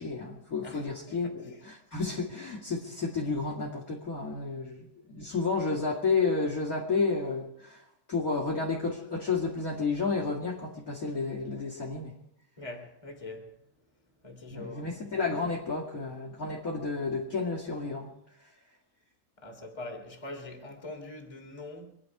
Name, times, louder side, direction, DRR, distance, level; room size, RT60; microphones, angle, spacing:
voice 1, 0.0-7.8 8.1-12.1 14.5-18.1, left 4 dB, 50° left, 1.0 m, -31 dB
voice 2, 0.6-1.3 12.6-13.5 14.2-14.9 19.4-21.9, left 2 dB, 10° left, 1.7 m, -43 dB
26.0 x 11.0 x 4.8 m
omnidirectional pair, 5.4 m